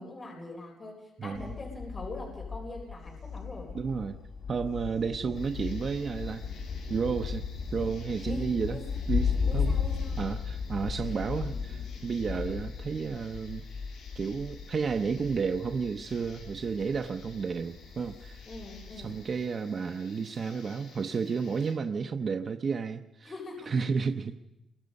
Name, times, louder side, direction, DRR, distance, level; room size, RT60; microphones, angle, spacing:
voice 1, 0.0-3.7 8.2-8.8 9.5-10.2 18.5-19.2 23.2-23.8, left 2 dB, 30° left, 0 dB, 4.0 m, -43 dB
Thunder, 1.3-19.4, left 6 dB, 65° left, 4.1 m, -36 dB
voice 2, 3.7-4.2 4.5-6.4 6.9-7.4 7.7-8.8 9.1-9.8 10.2-13.6 14.2-18.4 18.9-23.3 23.7-24.4, right 5 dB, 40° right, 6 dB, 0.8 m, -32 dB
sound 1, 5.3-21.7, left 4 dB, 85° left, 7.8 m, -55 dB
28.5 x 22.5 x 5.3 m, 0.90 s
wide cardioid pair, 150°, 0 cm